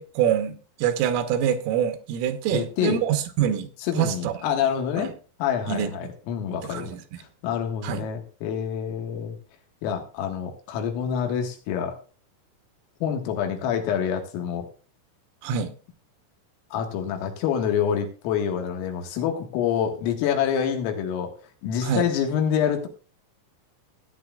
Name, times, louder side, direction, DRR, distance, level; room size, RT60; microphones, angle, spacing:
voice 1, 0.0-3.7 4.0-4.3 5.0-5.1 5.7-5.9 6.6-7.0 7.8-8.1 15.4-15.7 21.8-22.1, right 9 dB, 85° right, 8 dB, 3.5 m, -25 dB
voice 2, 2.5-3.0 3.8-5.1 5.4-6.9 7.4-9.4 9.8-11.9 13.0-14.7 16.7-21.3 21.6-22.9, left 8 dB, 85° left, 3 dB, 4.1 m, -26 dB
16.5 x 9.1 x 2.3 m, 0.37 s
omnidirectional pair, 5.8 m